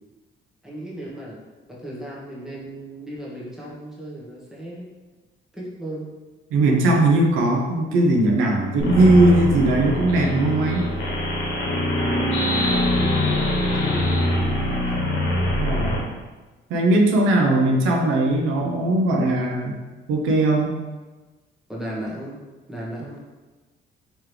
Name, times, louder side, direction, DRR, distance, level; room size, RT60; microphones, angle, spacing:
voice 1, 0.6-1.4 1.7-4.9 5.5-6.1 12.0-14.4 21.7-22.4 22.7-23.2, right 1 dB, ahead, -6 dB, 1.2 m, -35 dB
voice 2, 6.5-10.9 15.6-16.2 16.7-19.8 20.1-20.8, right 2 dB, 90° right, 0 dB, 0.7 m, -19 dB
sound 1, 8.8-16.0, left 1 dB, 90° left, 1.0 m, -23 dB
3.7 x 3.1 x 3.3 m, 1.2 s
cardioid pair, 90°, 20 cm